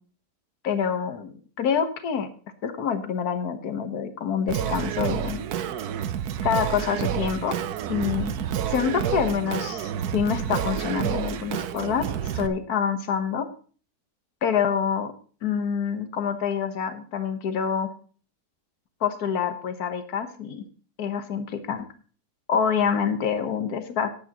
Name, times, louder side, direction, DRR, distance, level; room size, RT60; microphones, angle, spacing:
voice 1, 0.6-2.3 2.6-5.4 6.4-7.6 7.9-8.3 8.7-12.1 12.3-13.5 14.4-15.1 15.4-17.9 19.0-20.6 21.0-21.9 22.5-24.1, left 7 dB, 65° left, 8 dB, 1.7 m, -26 dB
Singing, 4.5-12.5, right 9 dB, 70° right, 1.2 m, -29 dB
18.0 x 8.4 x 3.0 m, 0.41 s
omnidirectional pair, 1.8 m